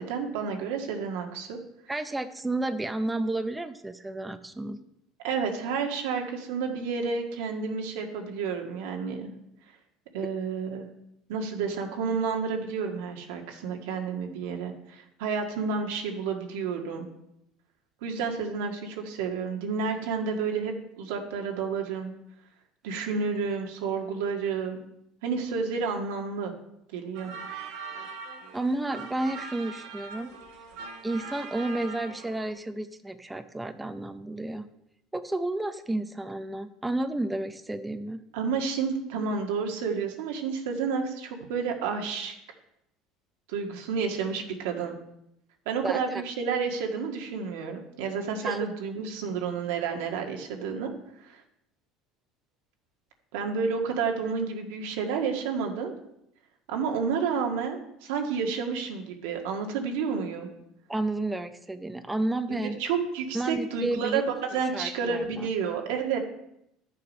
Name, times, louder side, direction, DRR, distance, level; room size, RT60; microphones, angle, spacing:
voice 1, 0.0-1.6 5.2-9.3 10.1-10.9 11.3-17.1 18.0-22.1 22.8-24.8 25.2-26.5 26.9-27.3 38.3-42.4 43.5-45.0 45.7-50.9 51.2-51.4 53.3-55.9 56.7-60.5 62.5-66.2, right 5 dB, 85° right, 3 dB, 1.7 m, -30 dB
voice 2, 1.9-4.8 28.5-30.3 31.0-34.7 35.1-38.2 45.8-46.2 48.4-48.7 60.9-62.8 63.3-64.2 64.5-65.5, right 2 dB, 10° right, 9 dB, 0.6 m, -31 dB
sound 1, 27.1-32.5, right 4 dB, 70° right, 1.9 m, -41 dB
12.0 x 6.7 x 5.4 m, 0.80 s
cardioid pair, 135°, 0 cm